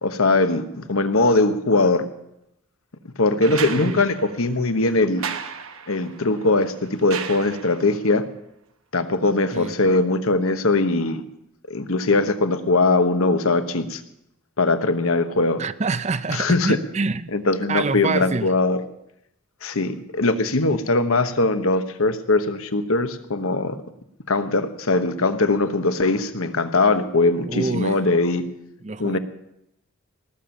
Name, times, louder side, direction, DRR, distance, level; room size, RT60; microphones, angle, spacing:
voice 1, 0.0-2.0 3.2-5.2 5.9-8.2 8.9-11.2 11.7-14.0 14.6-15.6 16.3-16.8 17.3-18.8 19.6-23.8 24.3-28.4 29.0-29.2, left 2 dB, 75° left, 9 dB, 1.2 m, -21 dB
sound 1, 3.4-8.0 9.6-9.7, right 7 dB, 75° right, 1.2 m, -35 dB
voice 2, 3.5-4.0 9.5-9.7 15.6-17.3 17.7-18.5 27.5-28.0 28.8-29.2, right 3 dB, 30° right, 15 dB, 0.5 m, -27 dB
18.5 x 7.2 x 8.9 m, 0.82 s
head